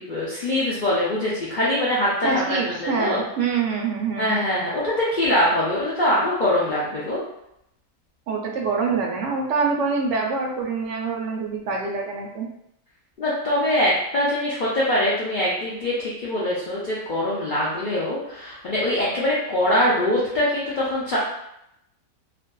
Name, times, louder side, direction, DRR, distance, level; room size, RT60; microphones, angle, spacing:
voice 1, 0.0-3.2 4.2-7.2 13.2-21.2, left 1 dB, 85° left, -7 dB, 0.4 m, -23 dB
voice 2, 2.2-4.3 8.3-12.5, right 4 dB, 65° right, -1 dB, 0.8 m, -25 dB
2.5 x 2.4 x 2.2 m, 0.80 s
omnidirectional pair, 1.5 m